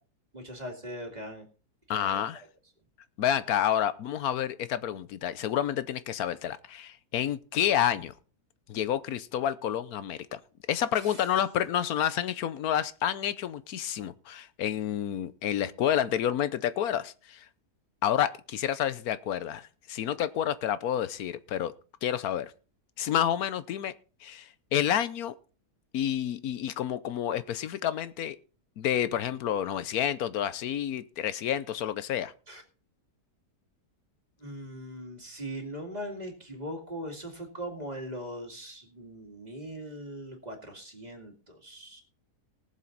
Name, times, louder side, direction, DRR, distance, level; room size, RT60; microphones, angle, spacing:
voice 1, 0.3-1.5 1.9-2.2 11.0-11.2 32.5-32.6 34.4-42.0, equal, 25° right, 2.4 m, -40 dB
voice 2, 1.9-2.4 3.2-8.1 8.7-10.4 10.7-17.5 18.0-21.7 22.0-22.5 23.0-23.9 24.2-25.3 25.9-28.4 28.8-32.3, left 10 dB, 70° left, 1.2 m, -29 dB
19.0 x 7.4 x 4.0 m
omnidirectional pair, 1.7 m